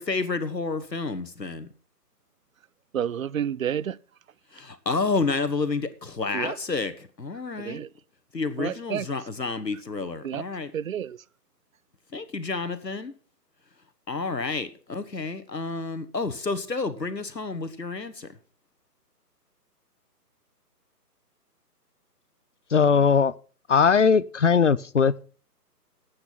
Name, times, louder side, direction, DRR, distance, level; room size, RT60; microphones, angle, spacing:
voice 1, 0.0-1.7 4.5-7.8 8.3-10.7 12.1-13.1 14.1-18.3, left 3 dB, 85° left, 1.6 m, -30 dB
voice 2, 2.9-4.0 6.3-6.6 7.6-7.9 8.6-9.1 10.2-10.4 10.7-11.2, right 9 dB, 55° right, 0.5 m, -30 dB
voice 3, 22.7-23.3 23.7-25.2, left 6 dB, 50° left, 0.5 m, -19 dB
12.0 x 8.8 x 5.8 m
figure-of-eight pair, 145°, 49 cm